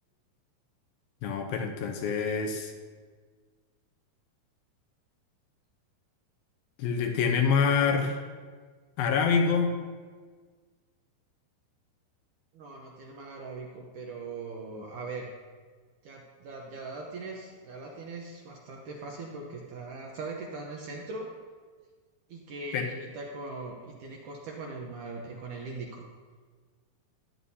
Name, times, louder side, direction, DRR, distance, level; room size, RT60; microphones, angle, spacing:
voice 1, 1.2-2.7 6.8-8.2 9.0-9.8 22.7-22.9, left 5 dB, 75° left, 3 dB, 2.5 m, -26 dB
voice 2, 12.5-15.3 16.0-21.3 22.3-26.1, right 3 dB, 70° right, -1 dB, 2.0 m, -40 dB
15.0 x 11.0 x 2.8 m, 1.5 s
omnidirectional pair, 4.7 m